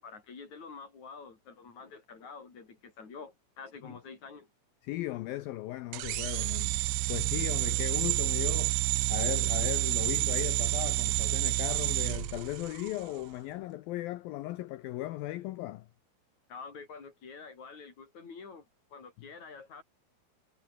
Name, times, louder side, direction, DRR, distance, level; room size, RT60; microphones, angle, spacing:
voice 1, 0.0-4.5 16.5-19.8, left 5 dB, 40° left, 6.3 m, -47 dB
voice 2, 4.8-8.8 9.1-15.9, left 16 dB, 85° left, 2.0 m, -37 dB
sound 1, 5.9-13.0, right 19 dB, 80° right, 2.7 m, -29 dB
omnidirectional pair, 5.3 m